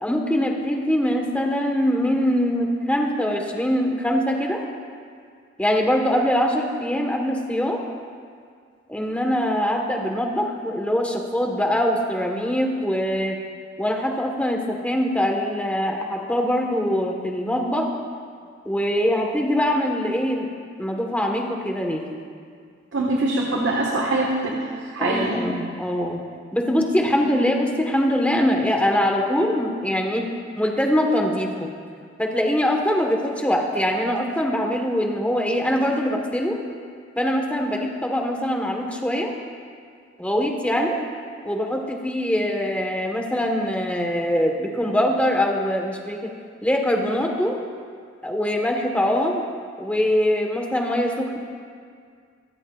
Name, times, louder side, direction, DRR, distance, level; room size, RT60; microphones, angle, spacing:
voice 1, 0.0-4.6 5.6-7.8 8.9-13.4 13.8-17.9 18.6-20.5 20.8-22.0 25.0-26.2 26.5-30.2 30.6-31.7 32.2-36.6 37.2-39.3 40.2-41.0 41.4-46.3 46.6-47.6 48.2-49.4 49.8-51.4, equal, 5° left, 1 dB, 1.4 m, -23 dB
voice 2, 22.9-25.4 27.0-27.1, right 2 dB, 80° right, -2 dB, 1.6 m, -24 dB
24.5 x 13.5 x 2.5 m, 2.1 s
head